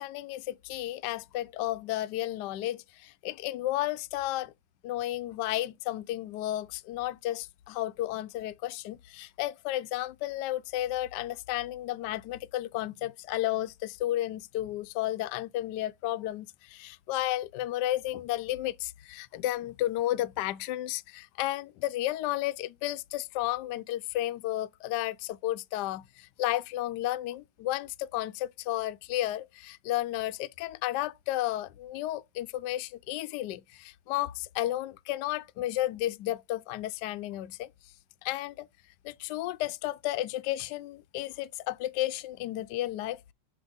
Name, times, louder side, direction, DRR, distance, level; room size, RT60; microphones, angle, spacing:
voice 1, 0.0-4.5 4.8-37.7 38.2-38.7 39.0-43.2, left 15 dB, 75° left, 1.0 m, -33 dB
7.9 x 2.9 x 5.4 m
omnidirectional pair, 2.3 m